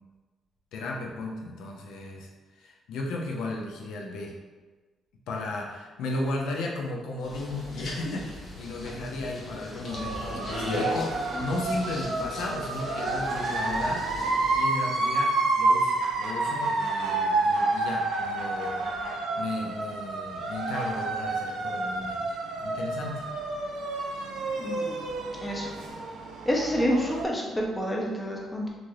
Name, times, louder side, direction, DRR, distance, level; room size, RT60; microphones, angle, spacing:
voice 1, 0.7-2.3 2.6-4.3 5.3-14.1 14.5-18.9 19.4-23.3, left 2 dB, 85° left, 0 dB, 0.5 m, -35 dB
sound 1, 7.2-14.6, left 1 dB, 50° left, 0.7 m, -37 dB
sound 2, 9.9-27.2, right 2 dB, 90° right, 0.5 m, -29 dB
voice 2, 24.6-25.0 25.4-25.7 26.4-28.7, equal, 15° left, -1 dB, 0.7 m, -28 dB
3.1 x 2.5 x 2.7 m, 1.3 s
cardioid pair, 90°, 0 cm